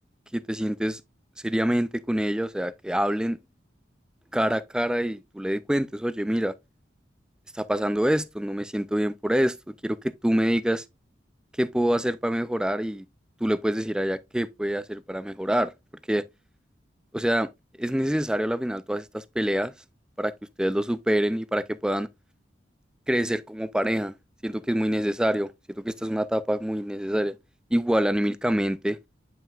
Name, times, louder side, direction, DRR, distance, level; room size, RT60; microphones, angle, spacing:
voice 1, 0.3-1.0 1.4-3.4 4.3-6.5 7.5-10.8 11.6-13.1 13.4-15.7 16.1-16.3 17.1-17.5 17.8-19.7 20.2-20.3 20.6-22.1 23.1-24.1 24.4-25.5 25.8-27.3 27.7-29.0, equal, 5° right, 0.3 m, -26 dB
9.1 x 5.7 x 2.3 m
head